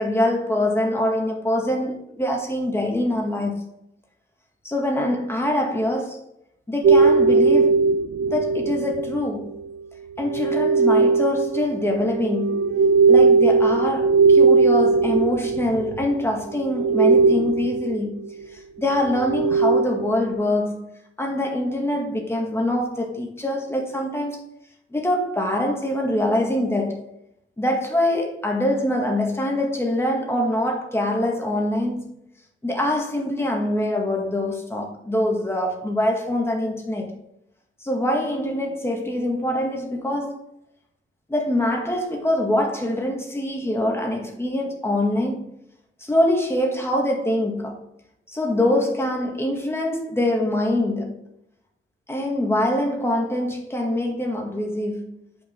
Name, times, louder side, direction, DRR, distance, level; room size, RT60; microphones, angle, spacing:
voice 1, 0.0-3.6 4.6-6.2 6.7-7.8 8.3-9.6 10.2-12.6 13.1-24.4 24.9-27.1 27.6-32.1 32.6-37.1 37.8-40.4 41.3-45.6 46.0-47.8 48.3-51.2 52.1-55.2, left 1 dB, 10° left, 1.9 m, -24 dB
sound 1, 6.8-9.2 10.2-16.2 16.5-18.0 18.9-20.1, right 4 dB, 55° right, 0.4 m, -18 dB
8.7 x 5.2 x 3.8 m
wide cardioid pair, 135°, 21 cm